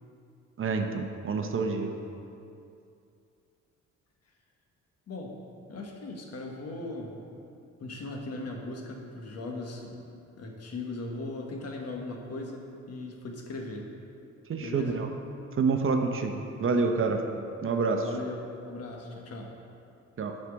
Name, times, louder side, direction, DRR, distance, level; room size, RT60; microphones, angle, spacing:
voice 1, 0.6-1.9 14.5-15.1 15.6-17.2 17.6-18.1 20.2-20.3, right 4 dB, 45° right, 4 dB, 0.7 m, -27 dB
voice 2, 5.1-5.4 5.7-7.1 7.8-13.9 14.6-15.0 18.0-18.4 18.7-19.5, left 2 dB, 55° left, 1 dB, 1.3 m, -38 dB
8.1 x 4.4 x 6.1 m, 2.6 s
cardioid pair, 90°, 30 cm